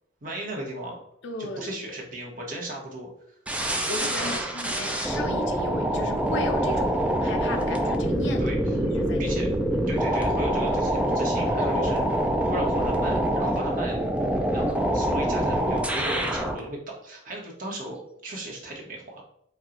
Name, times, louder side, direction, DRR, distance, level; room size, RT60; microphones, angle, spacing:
voice 1, 0.2-1.0 1.4-3.1 4.2-4.6 8.4-8.8 9.2-9.5 9.9-12.1 12.4-14.0 14.5-19.2, right 1 dB, 45° right, -2 dB, 1.0 m, -36 dB
voice 2, 1.2-1.7 3.9-9.4, left 2 dB, 60° left, 5 dB, 0.6 m, -35 dB
sound 1, 3.5-16.6, right 1 dB, 5° right, 0.3 m, -25 dB
4.3 x 2.3 x 3.8 m, 0.73 s
head